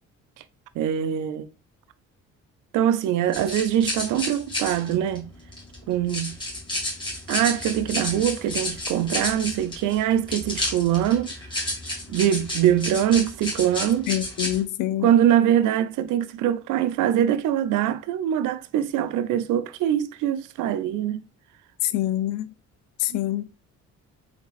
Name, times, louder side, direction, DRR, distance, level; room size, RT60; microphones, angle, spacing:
voice 1, 0.8-1.5 2.7-5.3 5.9-6.4 7.3-11.3 12.1-14.1 15.0-21.2, right 10 dB, 85° right, 0.5 m, -23 dB
sound 1, 3.3-14.6, left 1 dB, 15° left, 2.3 m, -31 dB
voice 2, 14.1-15.1 21.8-22.5 23.0-23.5, left 14 dB, 90° left, 0.5 m, -25 dB
4.4 x 4.0 x 2.4 m
cardioid pair, 90°, 30 cm